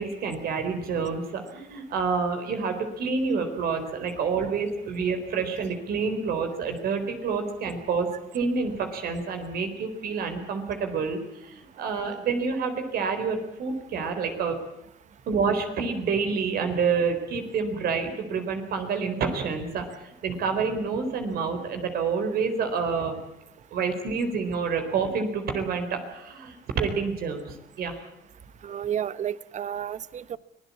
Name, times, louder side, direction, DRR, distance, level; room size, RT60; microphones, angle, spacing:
voice 1, 0.0-8.1 8.3-14.6 15.3-23.2 23.7-28.0, right 5 dB, 65° right, 6 dB, 4.2 m, -28 dB
voice 2, 28.6-30.4, right 9 dB, 45° right, 17 dB, 0.9 m, -31 dB
25.0 x 17.0 x 8.6 m, 0.84 s
cardioid pair, 110°, 17 cm